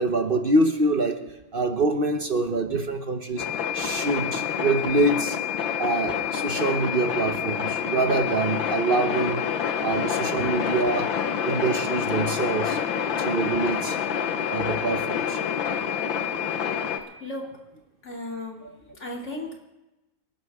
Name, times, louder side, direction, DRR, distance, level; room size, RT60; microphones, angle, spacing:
voice 1, 0.0-3.5 3.7-5.4 5.8-9.4 9.8-11.1 11.4-12.8 13.2-14.0 14.5-15.5, right 2 dB, 40° right, 6 dB, 0.8 m, -25 dB
sound 1, 3.4-17.0, left 8 dB, 80° left, 1.8 m, -27 dB
voice 2, 17.2-17.6 18.0-18.6 18.9-19.6, left 1 dB, 35° left, -1 dB, 3.0 m, -36 dB
27.5 x 11.5 x 3.6 m, 0.99 s
omnidirectional pair, 2.1 m